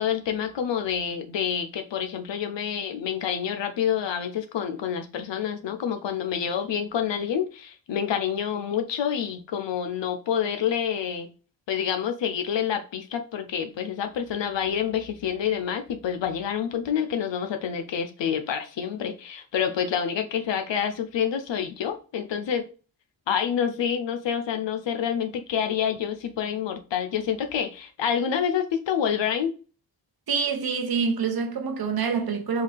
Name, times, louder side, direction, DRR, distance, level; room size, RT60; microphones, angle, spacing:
voice 1, 0.0-11.3 11.7-22.6 23.3-29.5, left 8 dB, 75° left, 0.6 m, -28 dB
voice 2, 30.3-32.6, right 5 dB, 55° right, 0.8 m, -26 dB
3.8 x 2.3 x 3.3 m
cardioid pair, 65°, 45 cm